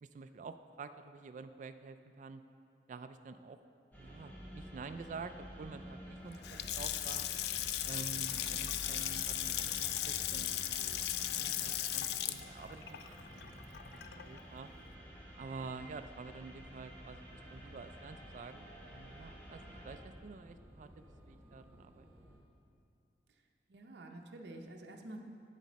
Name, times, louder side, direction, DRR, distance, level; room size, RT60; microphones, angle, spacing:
voice 1, 0.0-2.4 2.9-3.6 4.0-7.3 7.8-13.6 13.9-14.7 15.4-20.9 21.3-22.4, right 4 dB, 45° right, 10 dB, 0.3 m, -49 dB
sound 1, 3.9-20.0, equal, 10° left, 1.2 m, -51 dB
Water tap faucet / Sink (filling or washing) / Splash splatter, 6.3-14.4, left 12 dB, 65° left, 0.3 m, -37 dB
sound 2, 11.3-22.4, equal, 15° right, 1.2 m, -61 dB
voice 2, 23.7-25.2, right 1 dB, 70° right, 2 dB, 0.7 m, -50 dB
8.3 x 7.4 x 4.2 m, 2.5 s
head